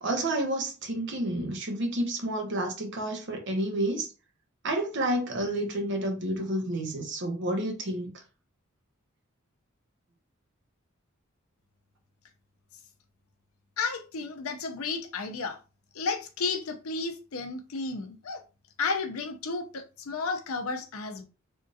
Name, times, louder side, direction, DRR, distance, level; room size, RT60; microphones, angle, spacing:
voice 1, 0.0-4.1 4.6-8.1, right 1 dB, 60° right, 1.0 m, -30 dB
voice 2, 13.8-15.6 15.9-18.4 18.8-21.2, left 4 dB, 85° left, 0.6 m, -32 dB
3.6 x 2.4 x 2.6 m
head